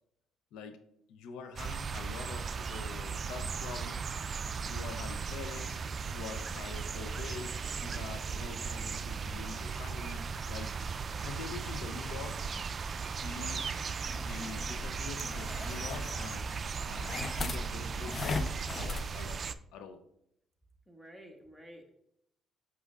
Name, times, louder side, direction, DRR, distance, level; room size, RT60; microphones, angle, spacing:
voice 1, 1.1-4.1 4.6-5.8 6.0-10.7 11.2-12.4 13.2-13.8 14.2-19.4 19.7-20.0, left 5 dB, 75° left, 8 dB, 0.6 m, -45 dB
sound 1, 1.6-19.5, right 5 dB, 45° right, 0.4 m, -37 dB
sound 2, 14.1-19.1, left 3 dB, 40° left, 0.6 m, -39 dB
voice 2, 20.9-21.9, equal, ahead, 2 dB, 1.7 m, -51 dB
8.1 x 6.2 x 2.5 m, 0.76 s
supercardioid pair, 65°, 0 cm